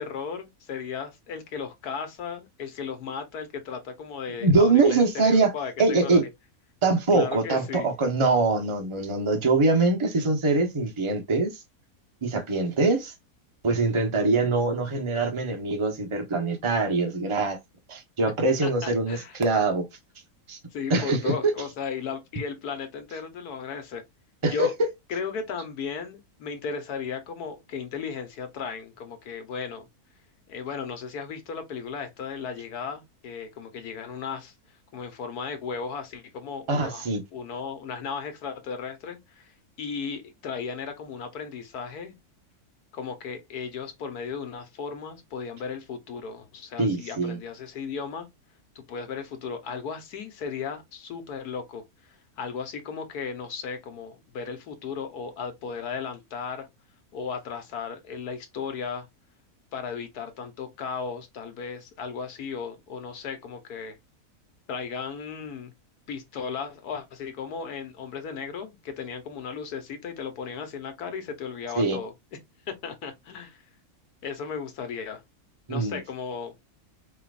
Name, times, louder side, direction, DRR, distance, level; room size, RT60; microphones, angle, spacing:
voice 1, 0.0-6.3 7.1-7.9 18.6-19.4 20.7-24.0 24.4-24.7 25.1-29.9 30.5-34.5 34.9-39.5 39.8-42.1 42.9-48.3 48.7-56.7 57.1-59.1 59.7-64.0 64.7-65.7 66.1-72.1 72.8-73.6 74.2-75.2 75.7-76.5, left 6 dB, 85° left, 1.6 m, -35 dB
voice 2, 4.4-5.5 5.8-6.3 6.8-11.6 12.2-13.1 13.6-17.6 17.9-19.8 20.5-20.6 20.9-21.5 24.4-24.7 36.7-37.2 46.8-47.4 71.8-72.0 75.7-76.0, right 3 dB, 25° right, 0.8 m, -23 dB
4.4 x 3.7 x 2.4 m
omnidirectional pair, 1.6 m